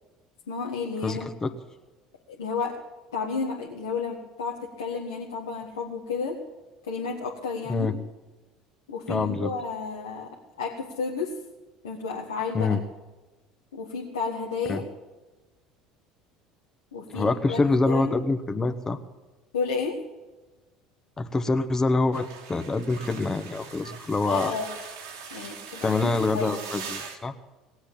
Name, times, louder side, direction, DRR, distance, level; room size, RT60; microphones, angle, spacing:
voice 1, 0.5-1.3 2.3-2.7 3.1-6.4 6.9-7.9 8.9-10.3 10.6-11.3 11.8-12.8 13.7-14.8 16.9-18.2 19.5-20.0 24.2-24.7 25.3-26.6, left 5 dB, 90° left, -2 dB, 1.7 m, -32 dB
voice 2, 1.0-1.5 7.7-7.9 9.1-9.5 12.5-12.8 14.7-14.8 17.1-19.0 21.2-24.5 25.8-27.3, left 3 dB, 25° left, 8 dB, 1.2 m, -25 dB
sound 1, 22.1-27.2, right 6 dB, 80° right, 2.0 m, -41 dB
19.0 x 8.0 x 8.9 m, 1.2 s
hypercardioid pair, 70°, 2 cm